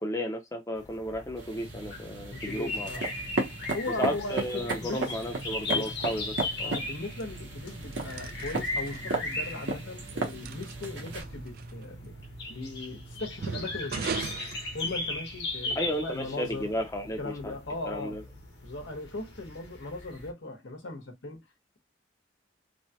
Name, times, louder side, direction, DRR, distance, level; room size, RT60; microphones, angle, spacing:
voice 1, 0.0-2.9 4.0-6.8 15.8-17.5 17.8-18.2, equal, 15° left, 0.6 m, -33 dB
sound 1, 0.8-20.3, left 2 dB, 60° left, 1.0 m, -38 dB
sound 2, 1.4-11.2, right 2 dB, 70° right, 0.9 m, -35 dB
voice 2, 2.3-3.0 3.7-5.1 5.7-6.2 6.6-12.1 12.5-14.3 14.7-16.7 17.2-18.2 18.6-21.4, left 2 dB, 75° left, 1.0 m, -38 dB
sound 3, 5.0-15.5, right 5 dB, 50° right, 0.3 m, -42 dB
3.1 x 2.2 x 2.8 m
head